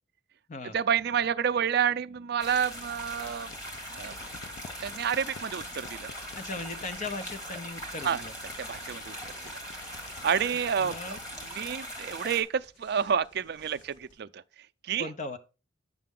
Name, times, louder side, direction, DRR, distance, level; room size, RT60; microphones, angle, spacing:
voice 1, 0.7-3.5 3.9-4.2 4.8-6.1 8.0-8.2 8.7-9.2 9.4-9.5 9.9-11.2 11.5-14.4 14.8-15.1, right 7 dB, 55° right, 0.4 m, -29 dB
sound 1, 2.4-11.8, left 5 dB, 70° left, 0.5 m, -50 dB
sound 2, 2.4-12.4, equal, 20° left, 2.1 m, -41 dB
voice 2, 6.3-8.3 10.8-11.2 15.0-15.4, left 2 dB, 40° left, 0.9 m, -38 dB
sound 3, 6.4-14.2, left 1 dB, 90° left, 2.7 m, -59 dB
8.4 x 6.7 x 3.7 m
head